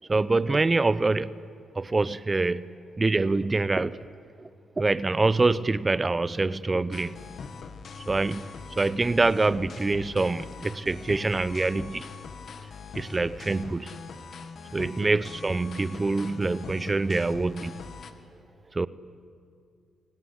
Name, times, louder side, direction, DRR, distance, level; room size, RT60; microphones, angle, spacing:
voice 1, 0.1-1.3 1.8-4.0 4.4-4.5 4.8-7.2 8.1-8.5 8.8-12.1 12.9-13.9 14.7-17.8 18.7-18.9, right 3 dB, 30° right, 17 dB, 0.8 m, -25 dB
sound 1, 6.9-18.1, left 5 dB, 60° left, 1.7 m, -42 dB
28.0 x 17.0 x 9.9 m, 2.3 s
supercardioid pair, 60°, 0 cm